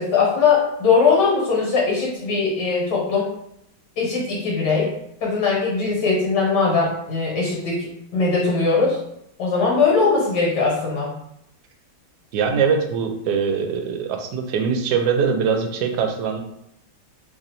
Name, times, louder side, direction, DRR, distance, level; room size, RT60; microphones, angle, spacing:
voice 1, 0.0-3.3 4.0-4.9 5.2-9.0 9.4-11.1, left 4 dB, 70° left, -3 dB, 1.7 m, -20 dB
voice 2, 12.3-16.4, right 6 dB, 75° right, 4 dB, 1.1 m, -22 dB
3.3 x 2.6 x 4.0 m, 0.77 s
omnidirectional pair, 1.9 m